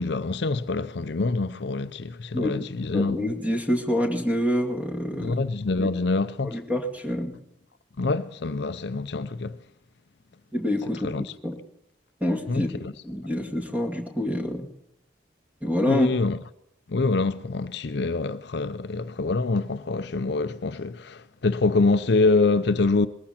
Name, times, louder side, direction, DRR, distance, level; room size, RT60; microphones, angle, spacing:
voice 1, 0.0-3.2 5.2-6.6 8.0-9.6 11.0-11.3 12.5-12.9 15.9-16.4 16.9-23.1, left 3 dB, 60° left, 0.6 m, -25 dB
voice 2, 2.9-5.4 5.8-5.9 6.4-7.3 10.5-11.1 11.4-11.6 12.2-12.7 13.0-14.7 15.6-16.2, left 1 dB, 10° right, 2.3 m, -27 dB
21.0 x 14.5 x 4.3 m
head